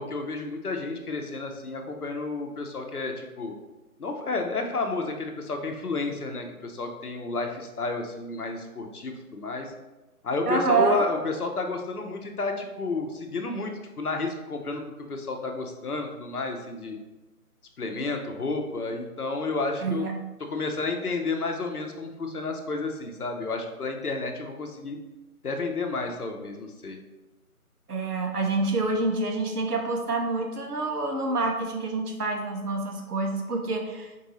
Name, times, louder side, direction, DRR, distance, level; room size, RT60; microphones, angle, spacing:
voice 1, 0.0-3.5 4.0-9.7 10.2-13.7 14.0-14.8 15.1-17.0 17.8-20.0 20.5-25.0 25.4-27.0, left 3 dB, 80° left, 4 dB, 0.8 m, -31 dB
voice 2, 10.5-11.1 19.8-20.1 27.9-34.1, right 3 dB, 90° right, 2 dB, 0.7 m, -27 dB
4.5 x 2.6 x 3.0 m, 1.1 s
figure-of-eight pair, 155°, 45 cm